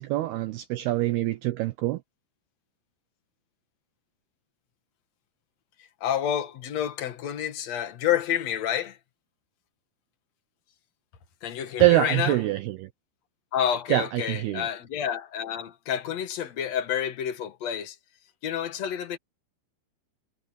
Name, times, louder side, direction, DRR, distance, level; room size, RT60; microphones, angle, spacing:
voice 1, 0.0-2.0 11.8-12.9 13.9-14.7, right 16 dB, 80° right, 2.3 m, -24 dB
voice 2, 6.0-9.0 11.4-12.4 13.5-18.0 18.4-19.2, left 9 dB, 55° left, 2.0 m, -29 dB
omnidirectional pair, 5.4 m